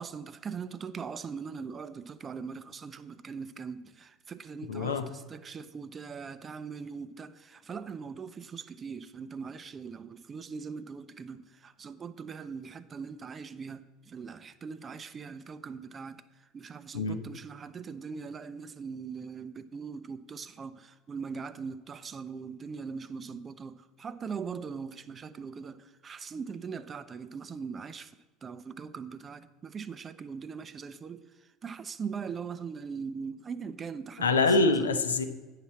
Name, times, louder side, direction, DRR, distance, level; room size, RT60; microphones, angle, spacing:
voice 1, 0.0-16.2 16.5-28.1 28.4-31.3 31.6-34.3 34.6-35.0, right 5 dB, 30° right, 0.5 m, -41 dB
voice 2, 4.7-5.0 16.9-17.2 34.2-35.2, left 3 dB, 85° left, 0.7 m, -25 dB
9.7 x 5.9 x 4.3 m
hypercardioid pair, 75°, 0 cm